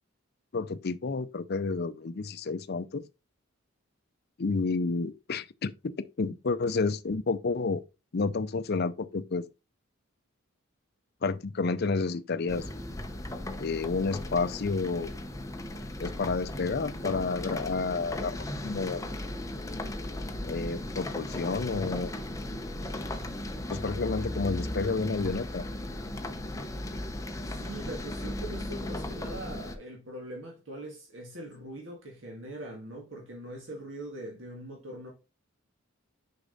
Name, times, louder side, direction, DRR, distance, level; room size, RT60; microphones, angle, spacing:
voice 1, 0.5-3.0 4.4-7.8 8.1-9.5 11.2-12.7 13.6-15.1 16.0-19.1 20.4-22.1 23.7-25.6, left 4 dB, 50° left, 0.5 m, -30 dB
sound 1, 12.5-29.8, left 1 dB, 15° left, 0.8 m, -36 dB
voice 2, 27.4-35.1, right 1 dB, 65° right, 1.9 m, -42 dB
6.7 x 5.1 x 3.9 m
head